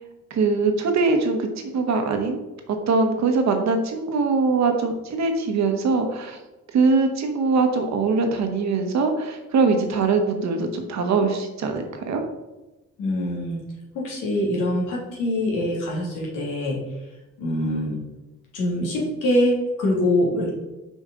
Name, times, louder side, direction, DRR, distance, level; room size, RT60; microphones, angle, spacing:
voice 1, 0.3-2.4 2.7-6.4 6.7-12.2, right 4 dB, 65° right, 5 dB, 1.1 m, -22 dB
voice 2, 13.0-13.6 13.9-16.8 17.4-18.0 18.5-20.5, left 1 dB, 90° left, -3 dB, 2.1 m, -24 dB
5.5 x 5.3 x 3.7 m, 1.0 s
cardioid pair, 90°, 30 cm